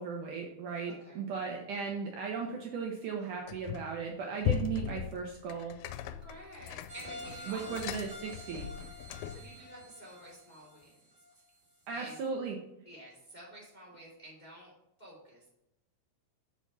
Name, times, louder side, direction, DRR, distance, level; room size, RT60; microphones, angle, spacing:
voice 1, 0.0-5.8 7.5-8.7 11.9-12.6, right 5 dB, 70° right, 0 dB, 2.1 m, -37 dB
voice 2, 0.9-1.2 6.0-7.9 9.2-10.9 11.9-12.2 12.8-14.7 15.0-15.5, equal, 15° left, -4 dB, 2.3 m, -51 dB
sound 1, 3.5-4.0 4.4-9.5, left 10 dB, 90° left, 2.5 m, -38 dB
sound 2, 6.9-11.6 12.1-12.2, left 1 dB, 20° right, 2.0 m, -48 dB
6.9 x 6.0 x 5.5 m, 0.86 s
omnidirectional pair, 4.3 m